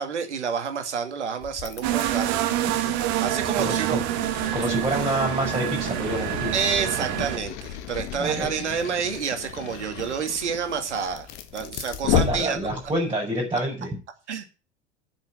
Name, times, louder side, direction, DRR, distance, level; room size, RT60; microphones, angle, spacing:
voice 1, 0.0-2.3 3.2-4.0 6.5-12.6 14.3-14.4, right 6 dB, 80° right, 7 dB, 2.3 m, -28 dB
sound 1, 1.4-13.0, left 10 dB, 50° left, 1.9 m, -34 dB
sound 2, 1.8-7.4, right 14 dB, 55° right, 1.8 m, -26 dB
voice 2, 3.6-4.0 4.5-6.5 8.1-8.5 12.1-13.9, right 1 dB, 15° right, 0 dB, 6.1 m, -27 dB
9.7 x 7.1 x 7.8 m, 0.34 s
figure-of-eight pair, 80°, 34 cm